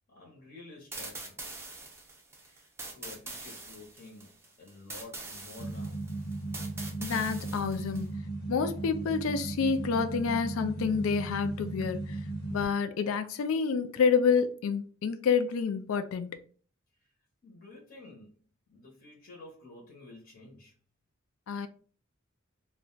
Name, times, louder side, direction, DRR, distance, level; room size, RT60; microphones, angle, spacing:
voice 1, 0.1-1.7 2.4-6.1 17.4-18.4 18.7-20.7, left 2 dB, 45° left, 0.9 m, -51 dB
sound 1, 0.9-8.1, right 3 dB, 10° right, 0.5 m, -44 dB
sound 2, 5.6-12.6, right 2 dB, 15° left, 0.9 m, -36 dB
voice 2, 7.0-8.2 8.5-12.2 12.5-16.3 21.5-21.7, left 6 dB, 70° left, 0.4 m, -28 dB
2.4 x 2.1 x 3.7 m
head